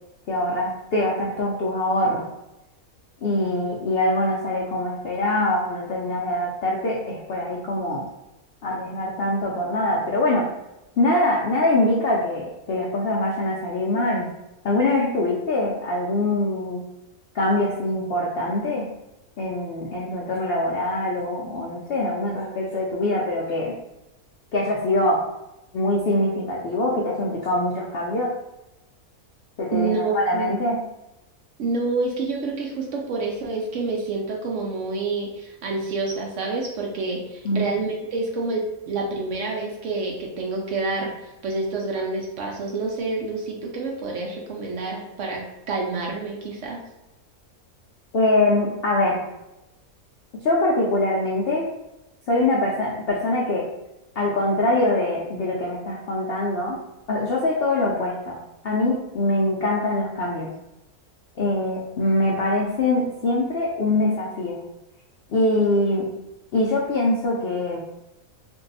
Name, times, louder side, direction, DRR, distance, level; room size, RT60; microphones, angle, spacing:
voice 1, 0.3-2.3 3.2-8.0 8.6-10.5 11.0-14.3 14.6-16.8 17.3-18.9 19.4-23.8 24.5-25.2 25.7-28.3 29.6-30.8 37.4-37.7 48.1-49.2 50.3-51.6 52.3-53.7 54.2-56.8 57.1-60.5 61.4-64.6 65.3-66.1 66.5-67.8, left 1 dB, 70° left, -3 dB, 0.5 m, -23 dB
voice 2, 29.7-30.6 31.6-46.8, right 3 dB, 65° right, 0 dB, 0.8 m, -28 dB
2.6 x 2.3 x 3.9 m, 0.95 s
omnidirectional pair, 1.6 m